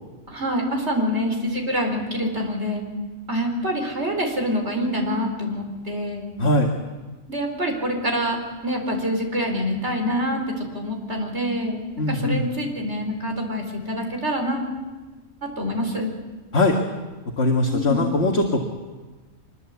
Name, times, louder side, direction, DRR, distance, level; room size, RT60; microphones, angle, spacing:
voice 1, 0.3-2.8 3.3-6.3 7.3-8.4 8.6-14.7 15.4-16.1 17.6-18.0, equal, 50° right, 2 dB, 4.8 m, -26 dB
voice 2, 12.0-12.4 16.5-16.8 17.4-18.6, left 2 dB, 50° left, 1 dB, 2.0 m, -20 dB
24.5 x 21.5 x 8.2 m, 1.3 s
omnidirectional pair, 1.4 m